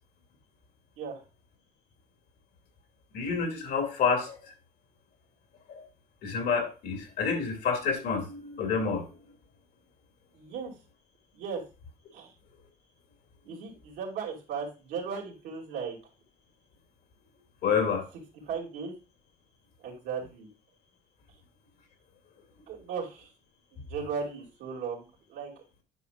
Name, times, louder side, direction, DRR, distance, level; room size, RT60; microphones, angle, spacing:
voice 1, 3.1-4.4 5.7-5.8 6.2-9.0 17.6-18.0, left 5 dB, 70° left, 3 dB, 2.3 m, -28 dB
voice 2, 10.3-10.7 11.3-11.6 12.1-12.3 13.4-16.0 18.5-18.9 19.8-20.5 22.7-23.3 23.7-25.5, right 6 dB, 85° right, -1 dB, 2.5 m, -36 dB
9.7 x 5.5 x 2.4 m, 0.30 s
cardioid pair, 110°, 17 cm